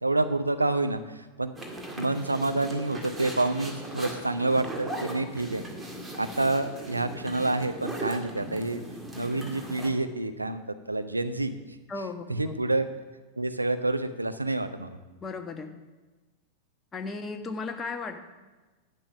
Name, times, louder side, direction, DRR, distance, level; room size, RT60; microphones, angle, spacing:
voice 1, 0.0-1.5 2.0-5.7 6.2-8.8 9.1-11.5 12.3-12.9 13.4-15.0, right 2 dB, 85° right, 9 dB, 0.7 m, -28 dB
sound 1, 1.6-9.9, right 1 dB, 10° right, 1.9 m, -38 dB
voice 2, 11.9-12.6 15.2-15.7 16.9-18.2, left 4 dB, 20° left, 5 dB, 1.1 m, -35 dB
11.0 x 9.0 x 6.0 m, 1.2 s
figure-of-eight pair, 90°, 0 cm